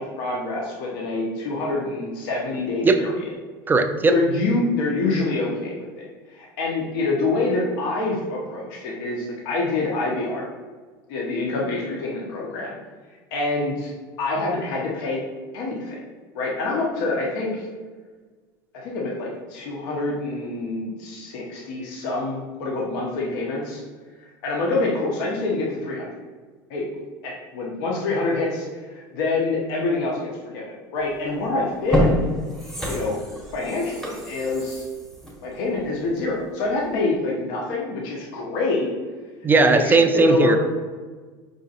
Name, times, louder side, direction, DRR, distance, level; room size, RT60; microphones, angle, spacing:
voice 1, 0.0-3.3 4.1-10.4 11.1-12.7 13.3-13.9 14.2-15.2 15.5-16.0 16.3-17.7 18.7-23.8 24.4-26.1 26.7-26.8 27.2-28.7 28.9-32.2 32.9-33.2 33.5-34.8 35.4-38.9 39.5-40.6, left 3 dB, 70° left, -3 dB, 0.8 m, -26 dB
voice 2, 3.7-4.1 39.4-40.6, right 3 dB, 15° right, 8 dB, 0.3 m, -17 dB
sound 1, 31.1-31.3 31.7-36.4 36.8-36.9, left 1 dB, 5° left, 0.9 m, -27 dB
5.0 x 2.6 x 2.5 m, 1.4 s
hypercardioid pair, 85°, 12 cm